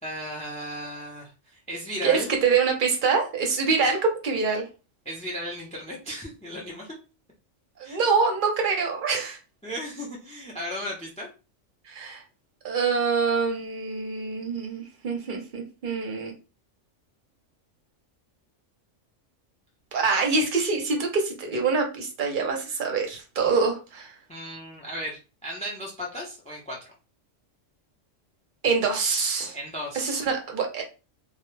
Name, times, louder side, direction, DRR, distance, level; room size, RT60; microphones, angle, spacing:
voice 1, 0.0-2.3 5.0-7.0 7.8-8.0 9.6-11.3 24.3-26.9 29.5-30.2, equal, 10° left, -1 dB, 0.3 m, -35 dB
voice 2, 2.0-4.6 7.8-9.4 11.9-12.2 12.6-16.3 19.9-24.1 28.6-29.6 29.9-30.8, right 5 dB, 50° right, 2 dB, 0.7 m, -25 dB
2.2 x 2.1 x 3.1 m, 0.31 s
omnidirectional pair, 1.3 m